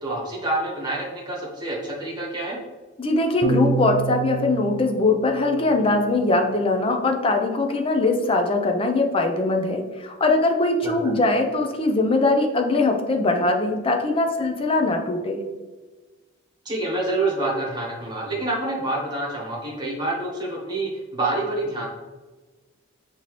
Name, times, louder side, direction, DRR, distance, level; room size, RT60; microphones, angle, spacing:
voice 1, 0.0-2.6 10.8-11.1 16.6-21.9, right 2 dB, 20° right, -4 dB, 1.2 m, -27 dB
voice 2, 3.0-15.4, left 2 dB, 25° left, 4 dB, 0.5 m, -21 dB
sound 1, 3.4-6.0, right 5 dB, 40° right, 0.5 m, -29 dB
5.4 x 2.9 x 3.0 m, 1.3 s
head